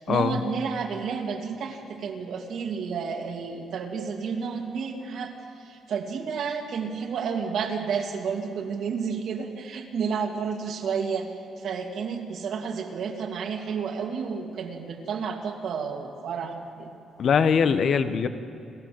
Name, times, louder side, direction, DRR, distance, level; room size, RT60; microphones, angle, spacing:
voice 1, 0.0-11.3 11.6-16.9, right 6 dB, 70° right, 3 dB, 2.4 m, -31 dB
voice 2, 17.2-18.3, left 6 dB, 60° left, 11 dB, 1.0 m, -21 dB
29.0 x 13.0 x 7.7 m, 2.6 s
cardioid pair, 90°, 0 cm